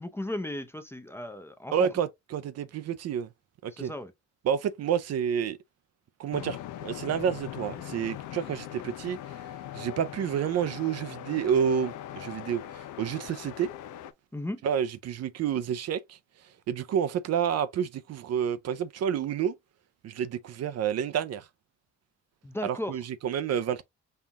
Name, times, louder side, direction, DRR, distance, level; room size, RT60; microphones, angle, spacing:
voice 1, 0.0-1.9 3.8-4.1 14.3-14.6 22.4-23.0, left 1 dB, 10° left, 0.6 m, -35 dB
voice 2, 1.7-3.3 3.6-3.9 4.4-5.6 6.2-9.2 9.7-13.7 14.6-16.2 16.7-19.6 20.0-21.5 22.6-23.8, right 8 dB, 55° right, 0.5 m, -29 dB
sound 1, 6.3-14.1, left 12 dB, 90° left, 0.5 m, -41 dB
5.5 x 2.3 x 2.8 m
cardioid pair, 90°, 30 cm